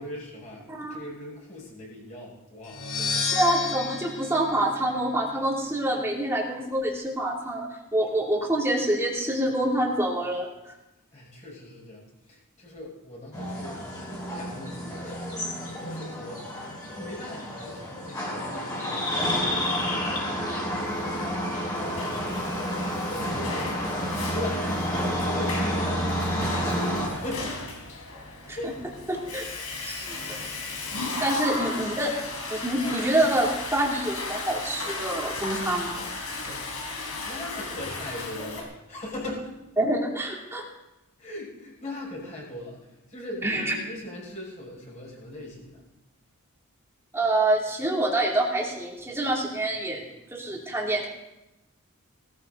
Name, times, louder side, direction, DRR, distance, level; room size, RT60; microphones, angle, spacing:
voice 1, 0.0-3.3 11.1-13.8 14.3-16.4 17.0-22.5 23.0-23.6 24.2-27.6 28.5-28.7 30.7-32.0 32.8-33.3 37.2-39.5 41.2-42.8 43.1-45.8, left 1 dB, 35° left, -3 dB, 5.9 m, -40 dB
voice 2, 0.7-1.0 3.3-10.7 28.5-28.6 29.1-29.4 29.7-30.4 31.2-32.1 32.5-36.0 39.8-40.7 43.4-43.7 47.1-51.1, right 1 dB, 10° right, -2 dB, 2.9 m, -26 dB
sound 1, 2.6-5.5, left 4 dB, 65° left, 2.2 m, -31 dB
sound 2, 13.3-27.1, equal, 15° left, 5.2 m, -30 dB
Water / Toilet flush, 21.1-38.6, left 3 dB, 85° left, 3.6 m, -35 dB
18.0 x 14.5 x 4.0 m, 0.94 s
head